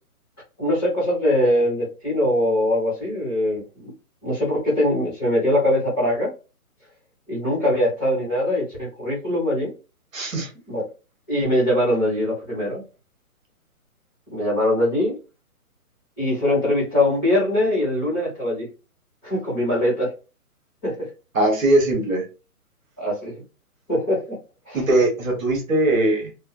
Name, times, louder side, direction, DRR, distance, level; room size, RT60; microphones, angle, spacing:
voice 1, 0.6-3.9 4.2-6.3 7.3-9.7 10.7-10.8 11.3-12.8 14.3-15.2 16.2-18.7 19.2-20.1 20.8-21.1 23.0-23.4 23.9-24.4 24.7-24.8, left 1 dB, 15° left, -9 dB, 1.1 m, -22 dB
voice 2, 10.1-10.5 21.3-22.2 24.7-26.3, right 1 dB, 60° right, 2 dB, 1.1 m, -20 dB
2.5 x 2.2 x 2.3 m, 0.32 s
hypercardioid pair, 170°, 45 cm